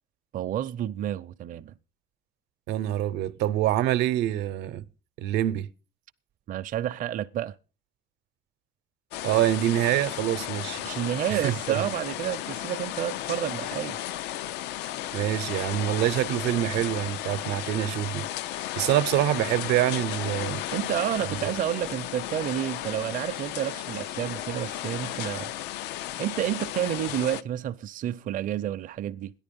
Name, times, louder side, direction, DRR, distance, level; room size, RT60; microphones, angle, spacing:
voice 1, 0.3-1.7 6.5-7.6 10.8-14.1 20.7-25.5 26.2-29.3, right 11 dB, 50° right, 0.6 m, -30 dB
voice 2, 2.7-4.9 5.2-5.7 9.2-10.8 11.3-11.9 15.1-18.3 18.5-20.6 21.3-21.4, right 13 dB, 90° right, 0.8 m, -26 dB
sound 1, 9.1-27.4, left 13 dB, 90° left, 0.6 m, -34 dB
14.0 x 10.5 x 5.3 m
cardioid pair, 110°, 17 cm